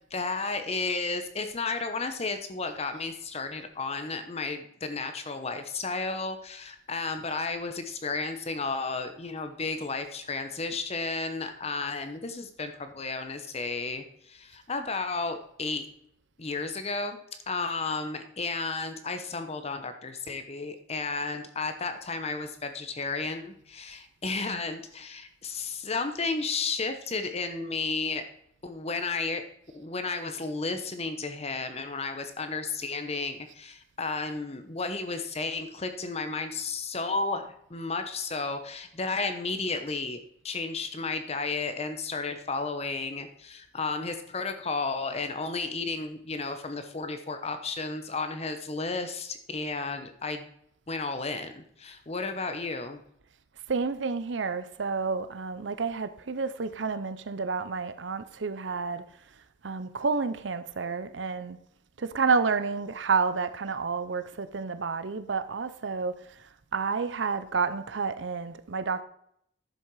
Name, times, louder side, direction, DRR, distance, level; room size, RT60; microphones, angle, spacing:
voice 1, 0.0-15.9 16.4-17.2 17.5-28.2 28.6-29.5 29.7-40.2 40.4-50.5 50.9-53.0, left 3 dB, 35° left, 0.9 m, -33 dB
voice 2, 53.7-59.0 59.6-61.6 62.0-66.2 66.7-69.0, right 5 dB, 75° right, 0.7 m, -30 dB
10.5 x 7.5 x 4.7 m
head